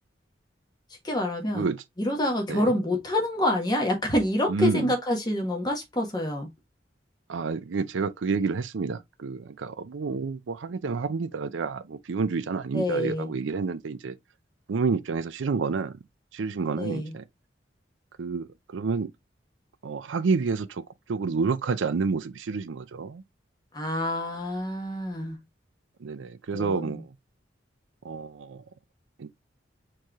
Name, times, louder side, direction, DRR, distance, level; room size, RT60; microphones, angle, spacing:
voice 1, 1.0-1.7 2.0-6.5 12.7-13.3 16.8-17.1 23.7-25.4 26.5-27.0, left 1 dB, 20° left, 1.4 m, -27 dB
voice 2, 4.5-4.9 7.3-14.2 14.7-16.0 16.3-17.2 18.2-19.1 19.8-23.2 26.0-27.1 28.0-28.6 29.2-29.3, right 4 dB, 90° right, 0.5 m, -29 dB
4.5 x 3.2 x 3.5 m
head